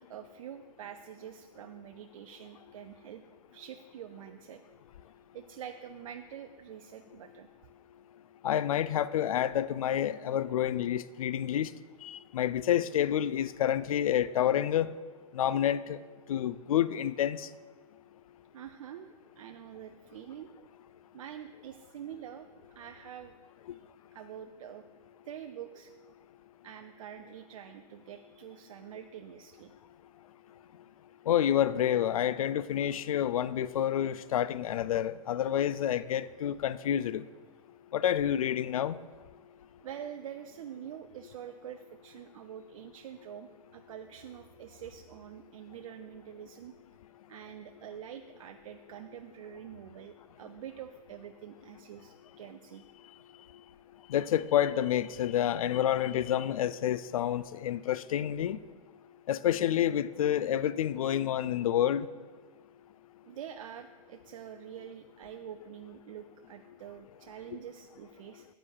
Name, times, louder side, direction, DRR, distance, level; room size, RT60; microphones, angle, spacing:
voice 1, 0.0-3.2 3.5-4.7 5.3-7.5 18.5-20.5 21.1-23.4 24.1-24.9 25.2-25.9 26.6-29.7 39.8-46.7 47.3-52.8 63.2-68.5, right 9 dB, 65° right, 7 dB, 0.4 m, -46 dB
voice 2, 8.4-11.7 12.0-14.9 15.3-16.0 16.3-17.5 31.3-37.2 37.9-39.0 54.1-58.6 59.3-62.1, left 10 dB, 70° left, 16 dB, 0.4 m, -28 dB
14.0 x 8.9 x 2.3 m, 1.5 s
figure-of-eight pair, 100°, 19 cm